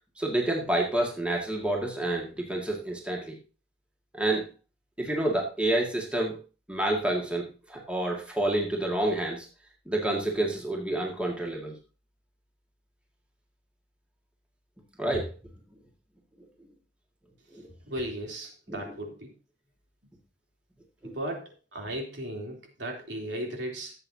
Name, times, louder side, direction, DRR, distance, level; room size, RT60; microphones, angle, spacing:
voice 1, 0.2-3.4 4.1-4.5 5.0-6.4 6.7-9.5 9.9-11.7 15.0-15.4 17.5-17.7 18.7-18.9 21.0-21.1, right 1 dB, 5° right, -1 dB, 1.9 m, -29 dB
voice 2, 17.9-19.3 21.0-23.9, right 1 dB, 75° right, 0 dB, 3.3 m, -36 dB
16.0 x 8.0 x 2.8 m, 0.32 s
head